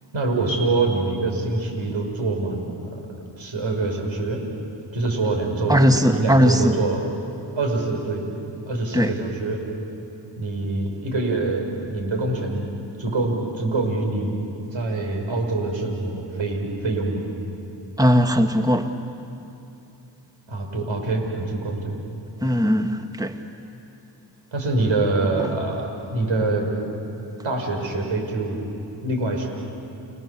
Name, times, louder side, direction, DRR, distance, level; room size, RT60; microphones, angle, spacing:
voice 1, 0.1-3.0 3.4-4.4 4.9-7.0 7.6-8.2 8.7-9.6 10.4-14.3 14.7-17.2 20.5-22.0 24.5-26.7 27.4-28.6 29.0-29.5, right 2 dB, 70° right, 6.3 m, -25 dB
voice 2, 5.7-6.8 8.9-9.2 18.0-18.9 22.4-23.4 25.4-25.5, equal, 10° right, 2.0 m, -19 dB
30.0 x 23.5 x 7.4 m
supercardioid pair, 40°, 47 cm